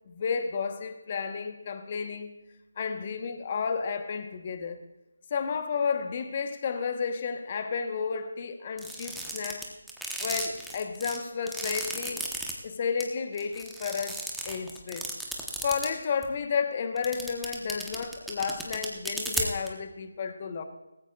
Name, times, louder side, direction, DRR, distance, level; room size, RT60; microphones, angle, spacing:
voice 1, 0.1-2.3 2.8-4.8 5.3-9.6 10.2-12.3 12.6-15.1 15.6-20.6, left 5 dB, 35° left, 1.1 m, -32 dB
sound 1, 8.8-12.5 13.0-13.1 13.4-15.9 16.2-16.3 17.0-19.7, right 1 dB, ahead, 1.1 m, -34 dB
18.5 x 15.5 x 2.4 m
figure-of-eight pair, 160°, 0 cm